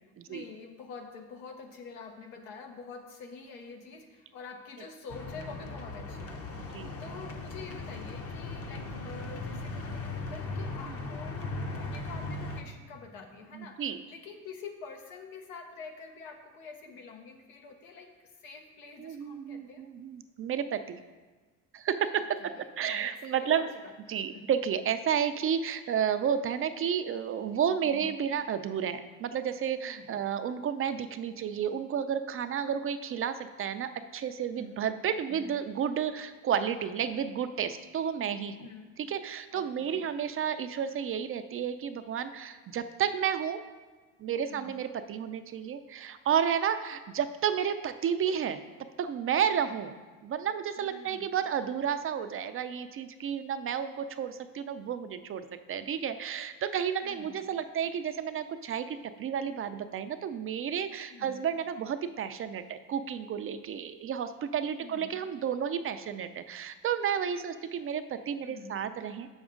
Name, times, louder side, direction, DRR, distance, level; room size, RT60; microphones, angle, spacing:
voice 1, 0.0-11.4 11.7-19.8 22.4-23.1 23.4-24.5 27.8-28.1 29.8-30.2 34.5-34.8 35.3-35.5 38.6-38.9 39.5-40.1 44.4-44.8 50.8-51.3 57.0-57.4 61.1-61.4 64.8-65.2 68.4-68.8, left 5 dB, 85° left, 3 dB, 1.1 m, -47 dB
sound 1, 5.1-12.6, left 2 dB, 35° left, 0.8 m, -38 dB
voice 2, 13.5-14.0 19.0-21.0 21.7-23.6 24.1-38.7 39.0-43.6 44.2-48.6 49.0-50.0 50.2-69.3, right 8 dB, 35° right, 10 dB, 0.4 m, -31 dB
6.9 x 6.2 x 3.7 m, 1.3 s
supercardioid pair, 85°, 40 cm